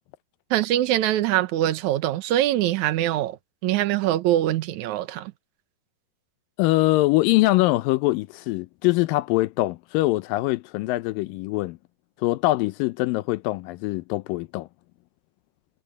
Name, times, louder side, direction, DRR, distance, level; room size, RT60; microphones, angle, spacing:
voice 1, 0.5-3.4 3.6-5.3, right 13 dB, 70° right, 2.0 m, -23 dB
voice 2, 6.6-11.8 12.2-14.7, left 19 dB, 80° left, 2.3 m, -23 dB
omnidirectional pair, 4.2 m